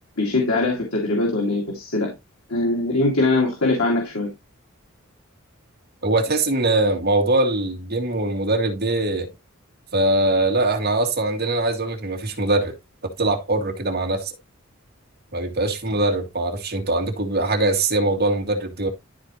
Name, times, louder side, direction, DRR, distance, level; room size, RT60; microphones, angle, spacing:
voice 1, 0.2-2.1 2.5-4.3, left 2 dB, 85° left, 2.5 m, -22 dB
voice 2, 6.0-9.3 9.9-12.8 13.2-14.3 15.3-18.9, right 2 dB, 50° right, 2.2 m, -22 dB
12.5 x 4.4 x 3.1 m
head